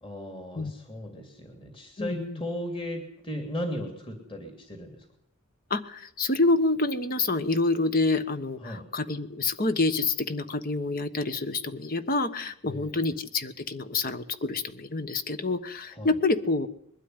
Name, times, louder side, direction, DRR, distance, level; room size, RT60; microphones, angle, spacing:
voice 1, 0.0-5.1 8.6-8.9 12.7-13.2 15.9-16.2, equal, 25° left, 4 dB, 3.0 m, -37 dB
voice 2, 2.0-2.4 5.7-16.7, left 3 dB, 40° left, 11 dB, 1.2 m, -27 dB
21.5 x 12.5 x 9.7 m, 0.75 s
head